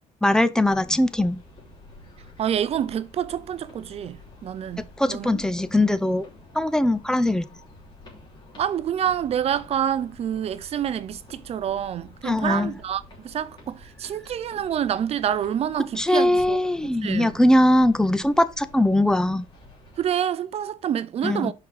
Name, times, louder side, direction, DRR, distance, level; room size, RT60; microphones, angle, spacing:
voice 1, 0.2-1.4 5.0-6.3 6.5-7.5 12.2-12.8 16.0-19.4 21.2-21.5, left 1 dB, 5° left, 0.5 m, -21 dB
sound 1, 0.7-20.1, left 1 dB, 35° left, 3.0 m, -49 dB
voice 2, 2.4-5.3 8.6-16.6 17.0-17.4 20.0-21.5, right 9 dB, 50° right, 0.6 m, -27 dB
5.9 x 4.9 x 4.9 m
cardioid pair, 145°, 14 cm